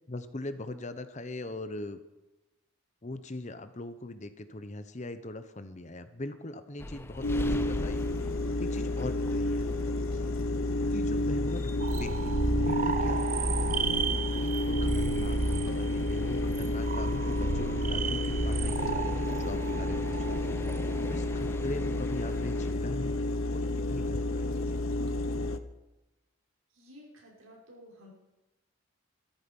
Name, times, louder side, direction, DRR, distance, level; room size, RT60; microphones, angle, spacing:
voice 1, 0.1-2.0 3.0-8.1 8.6-9.7 10.9-14.0 14.4-20.6 21.1-23.2 23.5-25.0, left 2 dB, 35° left, 10 dB, 0.9 m, -41 dB
sound 1, 6.8-22.7, left 1 dB, 10° left, 0.5 m, -43 dB
sound 2, 7.2-25.6, left 2 dB, 75° left, 0.9 m, -30 dB
sound 3, 11.8-21.4, right 4 dB, 40° right, 0.6 m, -33 dB
voice 2, 26.7-28.1, equal, 80° right, -2 dB, 5.4 m, -53 dB
15.5 x 13.5 x 5.4 m, 1.0 s
head